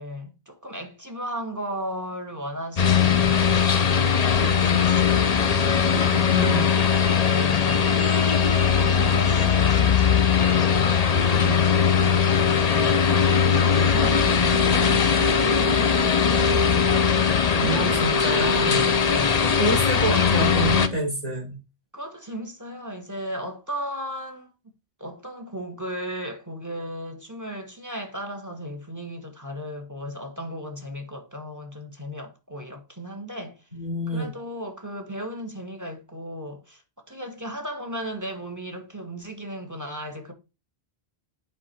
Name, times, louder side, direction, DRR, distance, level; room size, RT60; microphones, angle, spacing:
voice 1, 0.0-6.2 6.9-8.2 8.8-11.5 11.7-17.9 18.4-18.7 19.1-19.8 21.9-24.5 25.0-33.6 34.1-36.8 37.1-40.3, equal, 15° right, 1.5 m, -36 dB
sound 1, 2.8-20.9, left 7 dB, 40° left, 0.8 m, -20 dB
voice 2, 5.9-6.6 11.0-11.7 17.5-18.9 19.4-21.5 33.7-34.3, equal, 35° right, 5.2 m, -27 dB
8.4 x 5.1 x 4.5 m
omnidirectional pair, 1.1 m